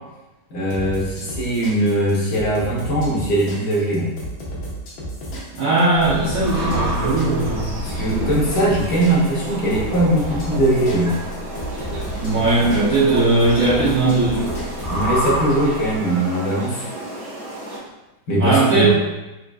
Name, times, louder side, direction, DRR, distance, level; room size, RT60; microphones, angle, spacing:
voice 1, 0.5-4.1 7.8-11.1 14.9-16.8 18.3-18.9, right 1 dB, 65° left, -4 dB, 1.3 m, -20 dB
sound 1, 0.7-15.4, equal, 80° left, 1.6 m, -32 dB
voice 2, 5.5-7.8 12.2-14.5 18.4-18.9, right 2 dB, 70° right, -8 dB, 0.8 m, -18 dB
Subway metro underground, 5.9-16.0, right 1 dB, 85° right, 1.7 m, -31 dB
sound 2, 6.0-17.8, right 1 dB, 40° right, 0.5 m, -32 dB
4.6 x 2.5 x 2.3 m, 1.0 s
omnidirectional pair, 2.2 m